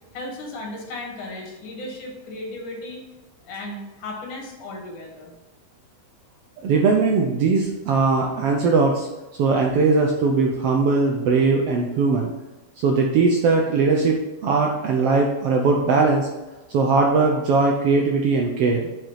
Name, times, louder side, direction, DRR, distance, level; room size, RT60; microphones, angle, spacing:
voice 1, 0.1-3.0 3.4-5.3, left 2 dB, 75° left, 0 dB, 3.3 m, -35 dB
voice 2, 6.6-9.1 9.4-12.3 12.8-16.3 16.7-18.9, right 4 dB, 75° right, 1 dB, 1.4 m, -20 dB
7.3 x 5.4 x 5.6 m, 1.1 s
omnidirectional pair, 3.6 m